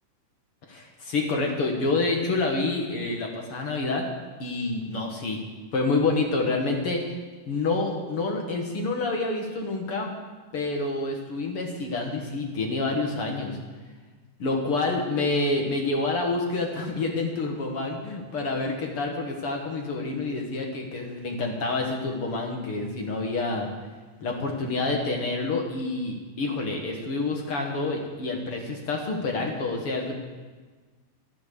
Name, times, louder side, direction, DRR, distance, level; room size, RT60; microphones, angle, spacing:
voice 1, 0.7-4.1 4.4-5.4 5.7-7.0 7.5-10.1 10.5-13.6 14.4-23.7 24.2-30.1, left 3 dB, 50° left, 1 dB, 2.2 m, -28 dB
12.5 x 11.5 x 6.9 m, 1.4 s
omnidirectional pair, 3.8 m